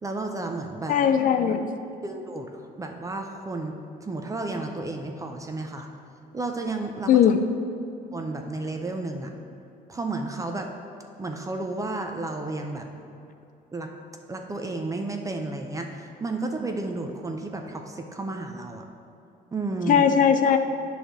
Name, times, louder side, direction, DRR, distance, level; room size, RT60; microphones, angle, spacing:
voice 1, 0.0-0.9 2.0-3.7 4.0-5.9 6.3-7.1 8.1-9.3 9.9-10.7 11.2-12.9 13.7-13.9 14.3-18.8 19.5-20.1, right 2 dB, 20° right, 4 dB, 0.5 m, -32 dB
voice 2, 0.9-1.7 7.1-7.4 19.9-20.6, left 8 dB, 50° left, 8 dB, 0.4 m, -19 dB
8.8 x 3.3 x 6.1 m, 2.7 s
cardioid pair, 110°, 17 cm